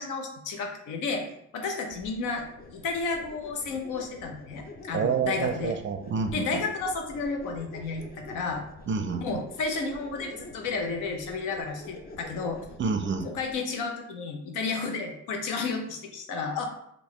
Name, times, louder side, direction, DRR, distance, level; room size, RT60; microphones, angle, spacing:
voice 1, 0.0-2.4 2.7-5.8 6.3-8.6 9.2-12.6 13.2-16.7, left 4 dB, 85° left, 3 dB, 0.7 m, -32 dB
sound 1, 1.9-13.6, left 2 dB, 30° left, 0.5 m, -47 dB
voice 2, 4.9-6.6 8.9-9.2 12.8-13.3, right 5 dB, 40° right, 6 dB, 0.5 m, -28 dB
3.8 x 2.4 x 3.1 m, 0.75 s
cardioid pair, 90°, 30 cm